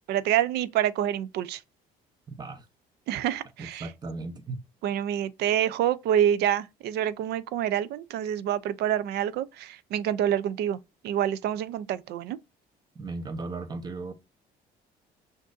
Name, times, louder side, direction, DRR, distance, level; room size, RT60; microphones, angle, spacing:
voice 1, 0.1-1.6 3.1-3.9 4.8-10.8 11.0-12.4, right 10 dB, 75° right, 0.5 m, -27 dB
voice 2, 2.3-2.7 3.6-4.6 12.9-14.1, right 3 dB, 25° right, 0.8 m, -36 dB
6.0 x 2.6 x 2.5 m
cardioid pair, 110°, 17 cm